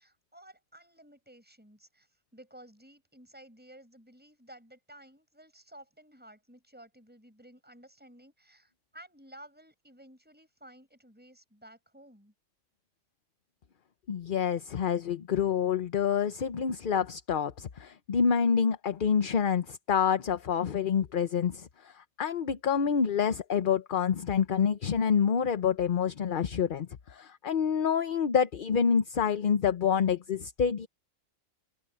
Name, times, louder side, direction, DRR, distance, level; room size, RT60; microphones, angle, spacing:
voice 1, 0.0-12.3, right 1 dB, 5° right, 6.4 m, -54 dB
voice 2, 14.1-30.9, left 7 dB, 45° left, 0.9 m, -27 dB
omnidirectional pair, 1.3 m